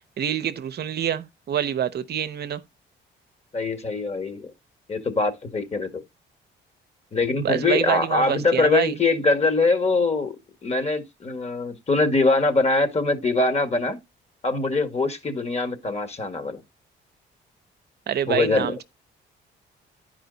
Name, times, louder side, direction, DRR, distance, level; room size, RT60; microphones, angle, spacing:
voice 1, 0.2-2.6 7.4-9.0 18.1-18.8, right 9 dB, 55° right, 0.7 m, -26 dB
voice 2, 3.5-4.5 4.9-6.0 7.1-10.3 10.6-14.0 14.4-16.6 18.3-18.7, left 3 dB, 35° left, 1.8 m, -23 dB
10.5 x 5.0 x 3.9 m
cardioid pair, 90°, 20 cm